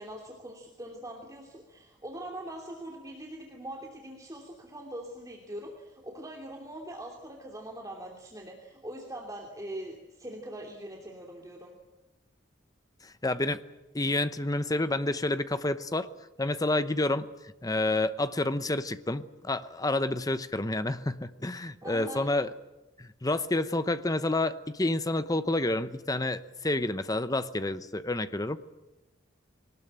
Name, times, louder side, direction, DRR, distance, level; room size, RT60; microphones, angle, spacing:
voice 1, 0.0-11.7 21.8-22.2, right 1 dB, 20° right, 0 dB, 2.9 m, -42 dB
voice 2, 13.0-13.6 13.9-16.1 16.4-17.3 17.6-22.5 23.0-28.6, left 2 dB, 20° left, 12 dB, 0.9 m, -29 dB
22.5 x 19.5 x 8.9 m, 1.1 s
head